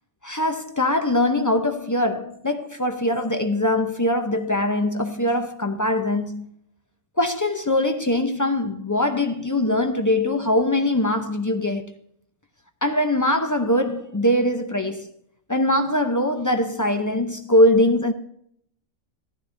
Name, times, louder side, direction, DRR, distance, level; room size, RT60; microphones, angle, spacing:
voice 1, 0.2-6.5 7.2-11.9 12.8-15.1 15.5-18.1, left 1 dB, 30° left, 0.3 m, -22 dB
15.0 x 10.5 x 2.6 m
omnidirectional pair, 1.5 m